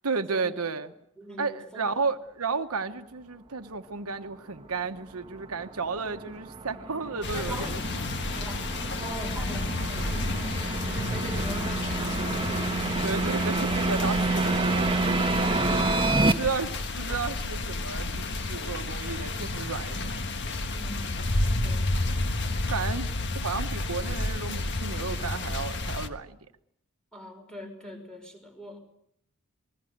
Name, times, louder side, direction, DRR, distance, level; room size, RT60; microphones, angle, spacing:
voice 1, 0.0-0.9 1.4-7.8 9.0-9.1 13.0-14.9 16.2-20.1 22.6-23.1 23.3-26.4, right 4 dB, 85° right, 1.1 m, -33 dB
voice 2, 1.2-2.1 7.3-12.9 15.5-16.6 20.8-22.4 27.1-28.8, equal, 5° left, 5.4 m, -43 dB
sound 1, 4.8-16.3, right 2 dB, 25° right, 1.2 m, -29 dB
sound 2, 7.2-26.1, left 2 dB, 55° left, 1.5 m, -31 dB
28.5 x 20.5 x 6.7 m
head